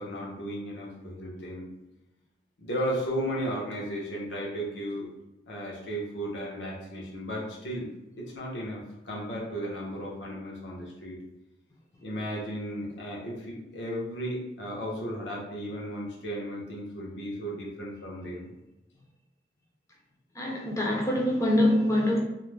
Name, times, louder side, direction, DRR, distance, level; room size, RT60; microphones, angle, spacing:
voice 1, 0.0-1.7 2.6-5.1 5.5-7.9 8.2-11.2 12.0-18.5, equal, 80° left, -3 dB, 0.8 m, -35 dB
voice 2, 20.4-22.2, left 1 dB, 20° left, -2 dB, 0.5 m, -24 dB
2.4 x 2.0 x 3.2 m, 0.96 s
head